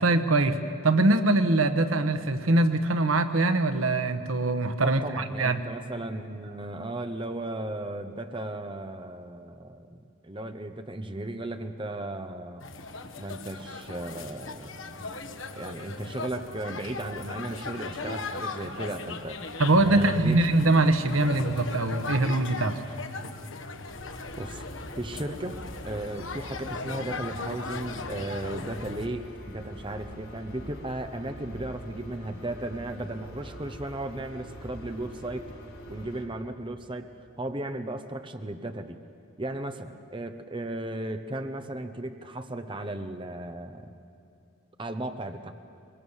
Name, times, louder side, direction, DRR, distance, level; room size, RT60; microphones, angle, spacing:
voice 1, 0.0-5.6 19.6-22.8, right 2 dB, 85° right, 9 dB, 1.2 m, -23 dB
voice 2, 4.8-12.6 13.2-15.0 15.5-19.4 19.9-20.5 24.4-24.6 25.0-35.5 35.9-37.1 37.4-39.0 39.4-43.9 44.8-45.5, right 1 dB, 25° right, 7 dB, 0.9 m, -35 dB
sound 1, 12.6-29.1, left 3 dB, 70° left, 1.4 m, -38 dB
sound 2, 23.9-36.2, equal, 90° left, 5.1 m, -44 dB
24.0 x 22.5 x 7.3 m, 2.8 s
head